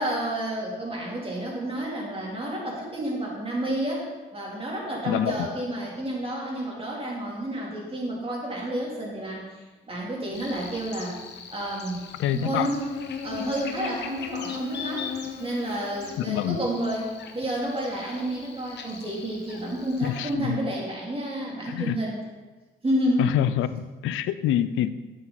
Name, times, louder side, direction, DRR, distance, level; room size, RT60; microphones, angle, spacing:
voice 1, 0.0-4.0 4.3-11.2 11.5-12.0 12.3-13.0 13.2-15.1 15.4-22.2 22.8-23.3, right 1 dB, 30° right, -3 dB, 3.2 m, -30 dB
voice 2, 5.1-5.4 12.2-12.7 16.3-16.6 20.0-20.6 21.7-22.0 23.2-24.9, left 11 dB, 85° left, 14 dB, 0.5 m, -26 dB
Buzz, 10.3-20.3, left 6 dB, 60° left, 1.1 m, -38 dB
10.5 x 7.5 x 4.1 m, 1.2 s
cardioid pair, 90°, 20 cm